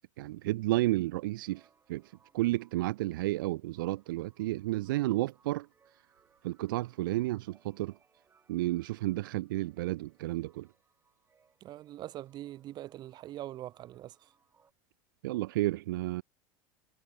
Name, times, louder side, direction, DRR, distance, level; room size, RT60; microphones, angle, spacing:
voice 1, 0.2-1.6 1.9-2.0 2.3-5.7 6.4-7.9 8.5-10.7 15.2-16.2, right 17 dB, 85° right, 0.4 m, -31 dB
sound 1, 0.8-14.7, right 6 dB, 20° right, 6.3 m, -69 dB
voice 2, 11.6-14.3, right 14 dB, 40° right, 1.0 m, -43 dB
supercardioid pair, 115°, 11 cm